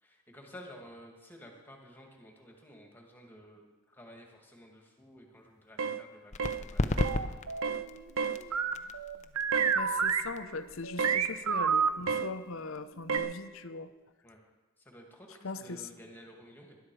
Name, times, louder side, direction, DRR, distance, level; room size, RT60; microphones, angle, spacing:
voice 1, 0.0-7.9 8.2-8.7 14.2-14.4 14.8-16.8, equal, 10° left, 1 dB, 2.1 m, -53 dB
sound 1, 5.8-6.0 6.4-6.6 7.0-7.2 7.6-7.9 8.2-8.4 9.5-9.8 11.0-11.2 12.1-12.3 13.1-13.3, right 5 dB, 65° right, 0.7 m, -32 dB
sound 2, 6.3-13.6, left 2 dB, 30° left, 0.6 m, -37 dB
sound 3, 7.0-7.7 8.5-11.9 13.1-13.2, right 6 dB, 85° right, 0.9 m, -29 dB
voice 2, 9.7-13.9 15.4-15.9, left 3 dB, 65° left, 11 dB, 0.8 m, -40 dB
19.5 x 11.5 x 4.8 m, 1.2 s
head